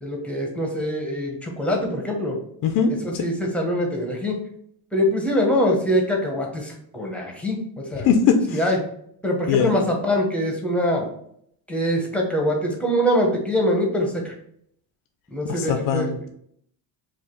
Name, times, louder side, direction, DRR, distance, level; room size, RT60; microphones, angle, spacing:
voice 1, 0.0-2.4 3.0-4.4 4.9-8.1 8.5-8.8 9.2-11.1 11.7-14.3 15.3-16.1, equal, 5° left, 0 dB, 0.8 m, -23 dB
voice 2, 2.6-3.2 8.0-8.6 9.5-9.7 15.5-16.3, left 6 dB, 50° left, 6 dB, 0.5 m, -21 dB
4.7 x 2.5 x 3.7 m, 0.69 s
cardioid pair, 150°, 42 cm